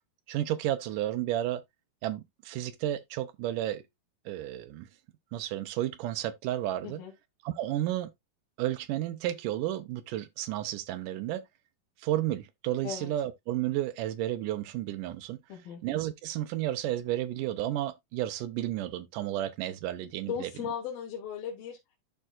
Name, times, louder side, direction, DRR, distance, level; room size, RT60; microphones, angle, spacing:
voice 1, 0.3-1.6 2.0-3.8 4.3-4.9 5.3-7.0 7.4-8.1 8.6-11.5 12.0-15.4 15.8-20.5, right 13 dB, 75° right, 2.1 m, -32 dB
voice 2, 15.5-15.8 20.3-22.0, left 8 dB, 85° left, 3.3 m, -37 dB
12.0 x 4.3 x 2.5 m
omnidirectional pair, 4.1 m